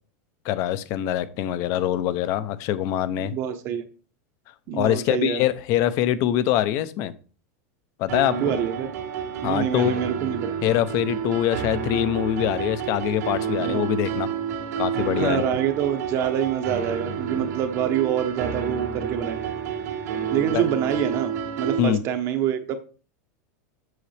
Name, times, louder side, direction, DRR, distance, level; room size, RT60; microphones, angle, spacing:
voice 1, 0.4-3.3 4.7-7.1 8.0-8.5 9.4-10.0 10.6-14.3 14.8-15.4 20.5-20.6 21.8-22.0, left 12 dB, 35° left, 0.6 m, -24 dB
voice 2, 3.2-3.8 4.7-5.4 8.4-8.9 9.4-10.5 13.6-13.8 15.1-19.5 20.3-21.3 21.6-22.8, right 9 dB, 30° right, 0.8 m, -26 dB
sound 1, 8.1-21.8, right 7 dB, 80° right, 2.1 m, -30 dB
7.8 x 6.7 x 3.3 m
supercardioid pair, 170°, 9 cm